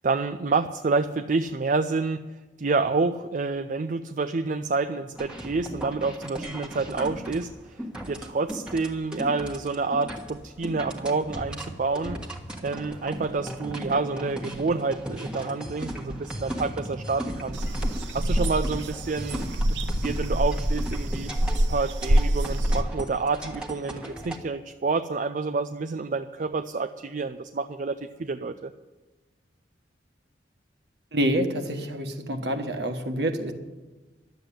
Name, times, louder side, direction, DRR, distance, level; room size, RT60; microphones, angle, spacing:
voice 1, 0.0-2.2 2.6-12.2 12.6-17.6 18.1-19.5 20.0-21.3 21.7-28.7, right 4 dB, 45° right, 9 dB, 0.4 m, -28 dB
sound 1, 5.2-24.4, right 1 dB, 5° right, 1.4 m, -36 dB
sound 2, 17.5-22.8, right 1 dB, 85° right, 0.8 m, -25 dB
voice 2, 31.1-33.5, right 1 dB, 65° right, 6 dB, 1.4 m, -27 dB
12.0 x 8.0 x 9.9 m, 1.2 s
head